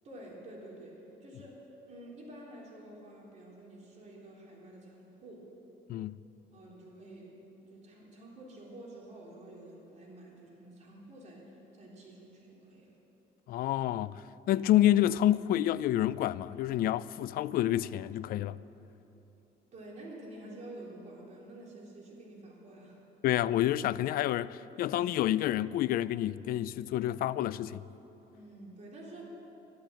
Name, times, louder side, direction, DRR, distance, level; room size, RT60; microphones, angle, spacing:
voice 1, 0.0-5.5 6.5-13.0 19.7-23.0 28.3-29.3, right 1 dB, 45° right, 3.6 m, -49 dB
voice 2, 13.5-18.6 23.2-27.8, left 13 dB, 60° left, 0.4 m, -28 dB
12.0 x 11.5 x 7.5 m
cardioid pair, 110°, 17 cm